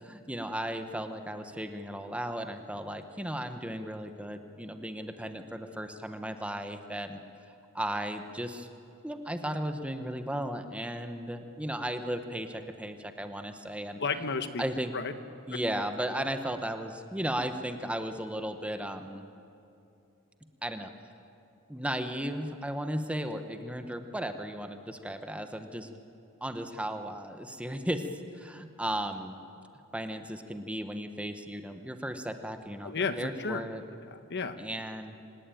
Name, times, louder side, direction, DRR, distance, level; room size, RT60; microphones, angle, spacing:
voice 1, 0.0-7.2 7.7-8.7 9.0-14.0 14.6-14.9 15.5-19.2 20.6-20.9 21.7-26.0 26.4-28.1 28.3-29.4 29.9-33.8 34.6-35.2, right 1 dB, 5° right, 7 dB, 1.0 m, -35 dB
voice 2, 14.0-14.6 14.9-15.1 32.8-33.6 34.1-34.6, left 4 dB, 50° left, 10 dB, 1.2 m, -32 dB
26.0 x 18.0 x 9.2 m, 2.7 s
head